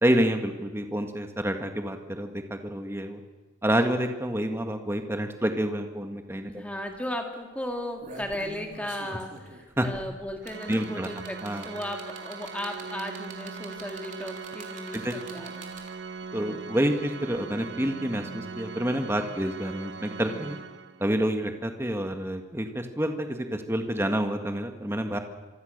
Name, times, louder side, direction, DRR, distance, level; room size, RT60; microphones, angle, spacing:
voice 1, 0.0-3.2 3.6-6.6 9.8-9.9 10.7-11.1 11.4-11.7 14.9-15.1 16.3-20.6 21.0-25.2, right 1 dB, 15° right, 5 dB, 1.8 m, -28 dB
voice 2, 6.5-11.4 11.6-15.7, left 1 dB, 5° left, 3 dB, 2.6 m, -36 dB
sound 1, 6.5-6.6 6.9-7.1 7.7-16.1 17.3-17.4, right 3 dB, 40° right, 3.7 m, -45 dB
Organ, 10.4-21.2, right 5 dB, 70° right, 1.2 m, -41 dB
26.0 x 23.5 x 6.7 m, 1.2 s
head